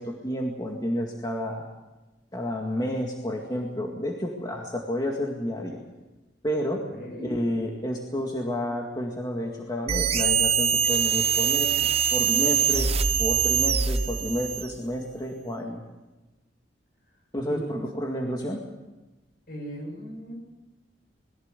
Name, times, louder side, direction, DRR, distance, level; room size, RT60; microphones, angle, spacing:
voice 1, 0.0-1.7 2.3-5.8 6.4-6.8 7.2-11.7 12.1-12.9 13.2-15.8 17.3-18.6, equal, 20° left, 0 dB, 2.0 m, -30 dB
voice 2, 6.8-7.3 17.5-17.8 19.5-20.3, equal, 55° left, 1 dB, 7.7 m, -37 dB
sound 1, 9.9-14.8, right 7 dB, 35° right, 0.9 m, -23 dB
21.5 x 15.5 x 8.3 m, 1.1 s
head